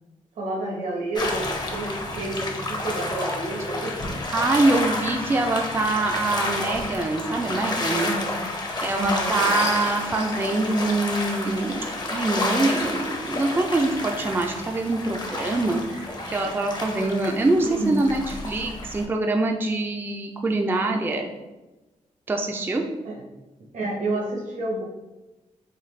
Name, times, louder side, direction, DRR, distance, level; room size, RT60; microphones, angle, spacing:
voice 1, 0.4-4.2 8.0-8.5 8.9-9.4 17.6-18.0 23.0-23.2 23.7-24.8, right 2 dB, 75° right, -1 dB, 0.9 m, -29 dB
sound 1, 1.2-19.0, left 2 dB, 35° left, 0.6 m, -30 dB
voice 2, 4.3-8.1 8.8-11.8 12.1-21.3 22.3-22.8, right 2 dB, 15° right, 2 dB, 0.3 m, -24 dB
sound 2, 9.0-14.2, left 2 dB, 70° left, 0.9 m, -40 dB
3.9 x 2.3 x 3.2 m, 1.1 s
cardioid pair, 85°, 13 cm